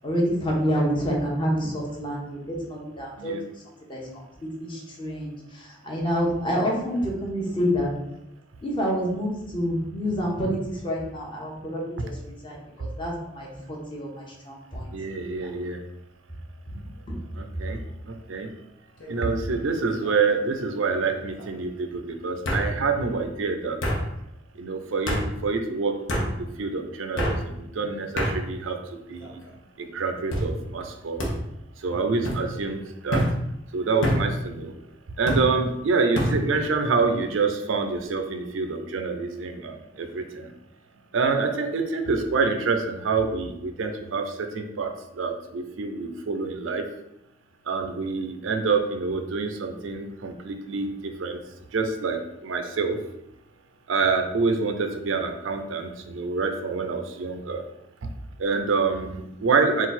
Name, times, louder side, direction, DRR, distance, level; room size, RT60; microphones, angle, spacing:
voice 1, 0.0-3.3 3.9-4.0 4.6-7.9 8.6-12.1 12.4-14.9 15.4-15.5 17.1-17.2, equal, 25° left, -3 dB, 1.0 m, -28 dB
voice 2, 14.9-15.8 16.7-16.8 17.3-17.8 18.1-18.5 19.1-23.8 24.6-28.8 29.1-29.4 29.8-31.3 31.8-33.2 33.7-34.7 35.2-40.5 41.1-46.9 47.7-51.4 51.7-53.0 53.9-57.6 58.4-59.9, right 4 dB, 80° right, 6 dB, 0.5 m, -27 dB
sound 1, 19.0-19.4 19.8-20.3 21.4-21.5 22.4-22.7 23.8-24.0 25.1-25.2 26.1-26.3 27.2-27.4 28.2-28.3 29.1-29.5 30.3-30.5 31.2-31.3 32.2-32.4 33.1-33.3 34.0-34.2 35.3-35.5 36.1-36.3, equal, 75° left, 1.0 m, -26 dB
3.9 x 2.4 x 4.2 m, 0.84 s
head